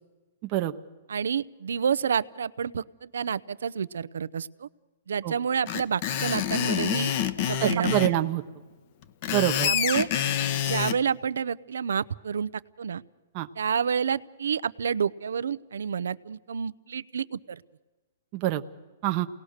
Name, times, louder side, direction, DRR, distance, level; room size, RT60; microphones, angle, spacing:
voice 1, 0.4-0.8 5.2-5.3 7.6-8.4 9.3-9.7 13.3-13.5 18.3-18.6 19.0-19.3, right 14 dB, 30° right, 6 dB, 0.8 m, -26 dB
voice 2, 1.1-4.7 5.1-7.1 7.5-8.1 9.6-10.1 10.7-12.5 12.8-13.0 13.6-17.6, right 7 dB, 85° right, 17 dB, 0.7 m, -29 dB
Screech, 5.7-8.1 9.0-11.0, left 10 dB, 40° left, 1.0 m, -27 dB
28.5 x 19.0 x 6.5 m, 1.3 s
hypercardioid pair, 155°, 0 cm